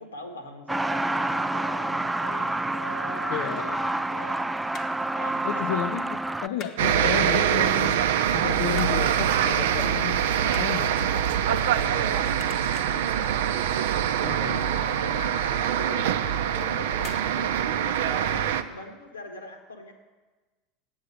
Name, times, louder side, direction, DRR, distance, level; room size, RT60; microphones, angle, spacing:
voice 1, 0.0-3.5 3.8-4.5 5.1-5.8 6.3-6.4 11.5-13.9 14.7-19.9, left 1 dB, 80° left, 5 dB, 1.4 m, -41 dB
Truck, 0.7-6.5, right 2 dB, 10° right, 0.3 m, -28 dB
voice 2, 3.3-3.9 5.4-8.0 8.3-11.1 14.2-14.8, left 10 dB, 55° left, 6 dB, 0.5 m, -32 dB
sound 1, 3.6-4.3 4.6-5.1 5.5-5.7 6.0-6.8 7.2-7.8 8.2-9.1 9.4-9.6 9.9-12.1 12.3-13.1 13.5-13.9 14.1-14.2 14.6-14.7 15.1-15.2 16.1-16.4 17.0-17.3 17.6-17.7, left 6 dB, 40° left, 0.9 m, -45 dB
sound 2, 6.8-18.6, right 9 dB, 60° right, 0.5 m, -24 dB
8.5 x 7.2 x 8.7 m, 1.2 s
figure-of-eight pair, 75°, 0 cm